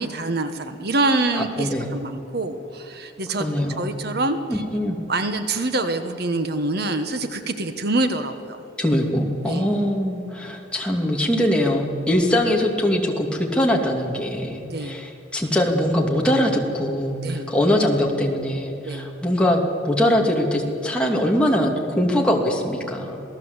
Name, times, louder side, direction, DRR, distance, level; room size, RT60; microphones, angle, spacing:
voice 1, 0.0-3.5 3.8-4.6 5.1-8.6 9.4-9.7 14.7-15.0 17.2-17.5 18.8-19.0, right 2 dB, 50° right, 8 dB, 1.2 m, -25 dB
voice 2, 1.4-1.9 3.4-3.9 4.5-5.0 8.8-23.2, left 1 dB, 5° left, 0 dB, 2.4 m, -22 dB
27.5 x 18.0 x 8.1 m, 2.8 s
head